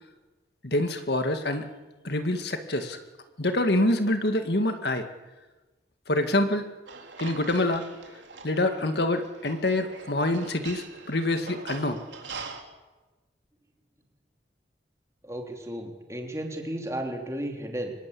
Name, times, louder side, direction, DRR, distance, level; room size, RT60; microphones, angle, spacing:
voice 1, 0.6-1.7 2.0-3.0 3.4-5.1 6.1-6.7 7.2-7.9 8.4-12.0, left 1 dB, 60° left, 7 dB, 2.0 m, -26 dB
sound 1, 6.9-12.6, right 4 dB, 75° right, 3.5 m, -43 dB
voice 2, 15.2-17.9, right 1 dB, 15° right, 2 dB, 3.5 m, -34 dB
24.5 x 21.0 x 8.6 m, 1.2 s
head